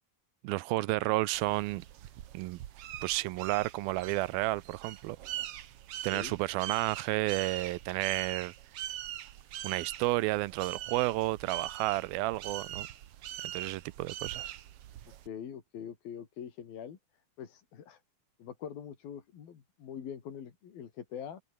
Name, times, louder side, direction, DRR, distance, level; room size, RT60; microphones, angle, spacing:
voice 1, 0.4-1.9 2.3-2.6 3.0-5.2 6.0-8.5 9.6-12.9 13.4-14.5, right 19 dB, 90° right, 2.6 m, -31 dB
sound 1, 1.3-15.3, right 12 dB, 75° right, 1.4 m, -42 dB
voice 2, 15.3-17.0 17.4-18.0 18.4-21.4, left 8 dB, 80° left, 4.7 m, -43 dB
omnidirectional pair, 4.2 m